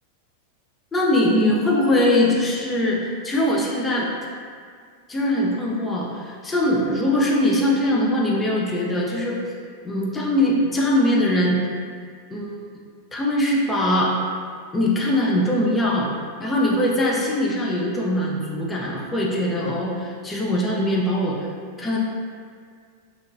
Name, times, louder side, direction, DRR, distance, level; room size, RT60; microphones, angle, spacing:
voice 1, 0.9-4.1 5.1-9.4 9.8-11.7 12.3-12.6 13.1-14.1 14.7-16.1 16.4-21.4 21.8-22.0, left 1 dB, 15° left, -4 dB, 0.5 m, -21 dB
2.8 x 2.6 x 2.4 m, 2.1 s
figure-of-eight pair, 90°, 0 cm